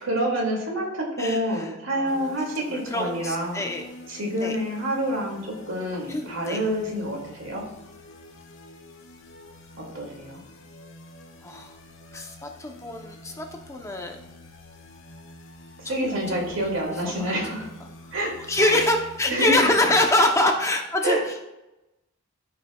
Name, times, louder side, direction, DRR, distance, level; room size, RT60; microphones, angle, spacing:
voice 1, 0.0-3.7 4.1-7.6 9.8-10.4 15.9-17.7 18.1-18.8 19.3-19.7 21.0-21.2, right 1 dB, 75° right, -1 dB, 2.4 m, -27 dB
voice 2, 1.2-2.4 2.7-3.8 4.4-4.6 6.1-6.6 11.4-11.7 12.1-14.2 15.8-16.4 17.0-17.1 18.5-21.5, left 1 dB, 15° left, 3 dB, 0.7 m, -25 dB
sound 1, 2.1-20.1, left 2 dB, 75° left, 1.3 m, -47 dB
14.0 x 5.6 x 2.3 m, 0.96 s
head